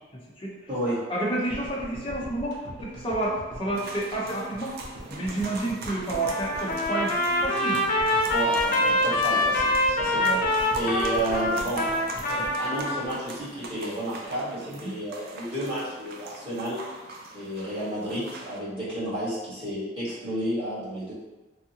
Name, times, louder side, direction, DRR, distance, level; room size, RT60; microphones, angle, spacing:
voice 1, 0.1-0.5 1.1-4.7 5.1-7.1 7.4-7.8 9.1-9.2 14.7-14.9, right 1 dB, 30° left, -5 dB, 0.8 m, -30 dB
voice 2, 0.7-1.0 8.3-11.8 12.2-16.8 17.3-21.1, right 1 dB, 25° right, -11 dB, 1.4 m, -31 dB
sound 1, 1.5-13.7 14.0-14.1 14.2-14.3, right 1 dB, 85° right, 0.7 m, -42 dB
sound 2, 3.7-18.6, right 2 dB, 55° right, 0.3 m, -41 dB
Trumpet, 6.2-13.1, left 1 dB, 45° left, 0.4 m, -25 dB
3.5 x 2.1 x 2.8 m, 1.1 s
head